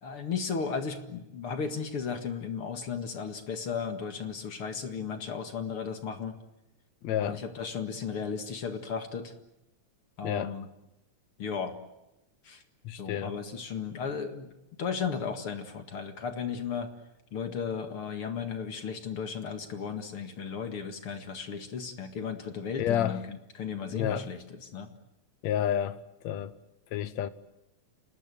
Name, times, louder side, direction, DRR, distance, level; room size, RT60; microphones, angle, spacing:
voice 1, 0.0-6.4 7.2-9.3 10.2-10.7 11.4-11.7 12.4-12.6 12.9-14.5 14.8-16.9 17.3-23.2 23.5-24.9, left 6 dB, 50° left, 2.5 m, -35 dB
voice 2, 7.0-7.4 10.2-10.5 12.8-13.3 22.8-23.2 23.9-24.3 25.4-26.0 26.2-26.5 26.9-27.3, left 10 dB, 70° left, 2.3 m, -30 dB
28.5 x 19.5 x 9.2 m
omnidirectional pair, 3.3 m